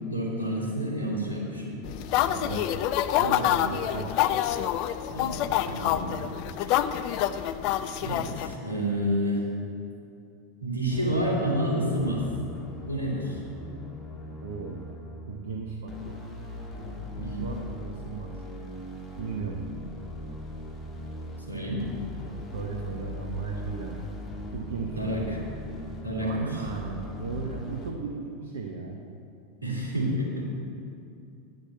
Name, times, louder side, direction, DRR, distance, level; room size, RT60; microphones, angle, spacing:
voice 1, 0.1-1.8 5.1-5.4 5.7-6.2 8.0-9.4 10.6-12.2 12.9-13.4 17.2-17.5 21.5-21.9 25.0-25.4 26.0-26.6 29.6-30.5, equal, 85° right, -4 dB, 2.7 m, -29 dB
sound 1, 1.8-8.6, left 11 dB, 45° left, 0.4 m, -27 dB
voice 2, 2.3-2.7 3.2-4.1 14.4-14.8 15.3-16.2 17.2-18.3 19.2-19.6 22.5-24.0 24.5-25.1 26.2-29.0, right 5 dB, 65° right, 1 dB, 0.8 m, -36 dB
sound 2, 10.9-27.9, left 1 dB, 20° left, 1.9 m, -40 dB
9.8 x 6.5 x 7.3 m, 2.6 s
figure-of-eight pair, 85°, 0 cm